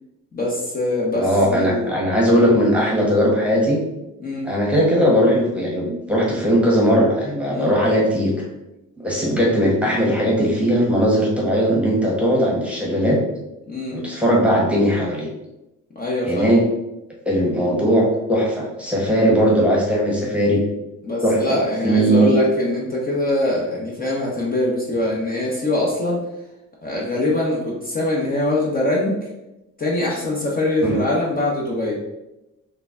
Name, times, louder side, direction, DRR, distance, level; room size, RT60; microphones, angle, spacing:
voice 1, 0.3-1.9 4.2-4.5 7.5-7.7 13.7-14.0 16.0-16.5 21.0-26.2 26.8-29.2 29.8-32.0, left 1 dB, 30° left, -4 dB, 0.9 m, -23 dB
voice 2, 1.1-3.8 4.4-8.3 9.0-13.2 13.9-15.3 16.2-16.6 17.2-20.6 21.2-22.4 30.8-31.0, equal, 5° right, -3 dB, 1.1 m, -19 dB
3.8 x 2.3 x 3.7 m, 0.95 s
cardioid pair, 90°, 30 cm